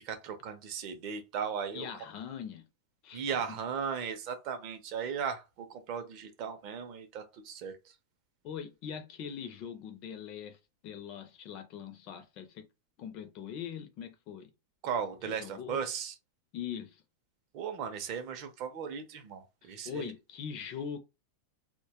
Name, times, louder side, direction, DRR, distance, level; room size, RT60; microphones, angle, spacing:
voice 1, 0.0-1.9 3.1-7.7 14.8-16.1 17.5-20.1, right 7 dB, 35° right, 0.5 m, -37 dB
voice 2, 1.7-2.6 3.0-3.6 8.4-10.6 10.8-12.6 13.0-14.5 15.3-15.9 16.5-17.0 19.6-21.0, left 8 dB, 30° left, 0.4 m, -42 dB
2.1 x 2.0 x 2.8 m
supercardioid pair, 180°, 0 cm